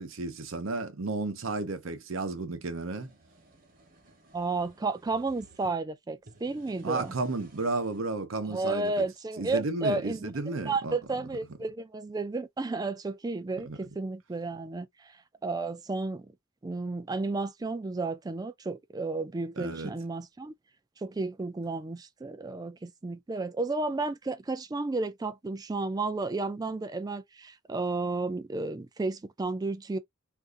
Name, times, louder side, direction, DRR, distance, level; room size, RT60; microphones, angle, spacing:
voice 1, 0.0-3.1 6.8-9.0 9.4-11.0 13.7-13.8 19.6-19.9, right 3 dB, 90° right, 0.8 m, -33 dB
sound 1, 3.0-5.7 6.2-8.1, right 2 dB, 45° right, 1.0 m, -56 dB
voice 2, 4.3-7.1 8.5-15.1 15.4-16.3 16.6-20.5 21.0-30.0, right 3 dB, 20° right, 0.4 m, -32 dB
2.6 x 2.5 x 3.6 m
head